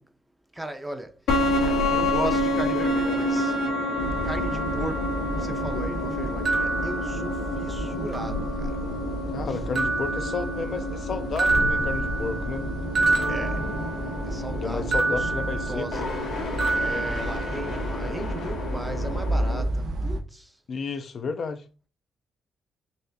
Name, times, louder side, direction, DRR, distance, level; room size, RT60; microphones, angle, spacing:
voice 1, 0.5-1.2 1.9-3.6 4.2-8.8 9.5-9.6 13.3-13.6 14.2-15.3 15.7-16.2 16.7-20.5, right 1 dB, 10° right, 0.5 m, -36 dB
sound 1, 1.3-19.6, left 1 dB, 80° left, 1.1 m, -29 dB
sound 2, 4.0-20.2, right 1 dB, 85° right, 0.6 m, -33 dB
sound 3, 6.4-7.7 8.1-8.9 9.7-11.0 11.4-14.3 14.9-16.3 16.6-17.9, right 3 dB, 50° right, 0.8 m, -28 dB
voice 2, 9.3-12.7 14.5-15.9 20.7-21.6, left 5 dB, 50° left, 0.4 m, -32 dB
3.9 x 2.5 x 2.7 m
cardioid pair, 90°, 0 cm